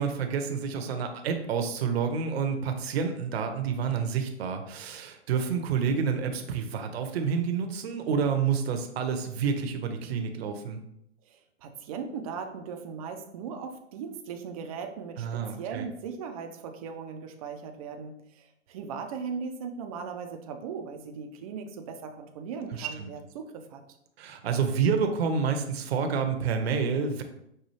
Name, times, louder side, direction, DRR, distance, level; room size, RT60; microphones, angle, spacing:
voice 1, 0.0-10.8 15.2-15.9 22.7-23.1 24.2-27.2, right 6 dB, 55° right, 6 dB, 0.7 m, -29 dB
voice 2, 11.2-23.8, right 6 dB, 30° right, 5 dB, 0.4 m, -38 dB
5.5 x 2.3 x 3.1 m, 0.77 s
hypercardioid pair, 130°, 37 cm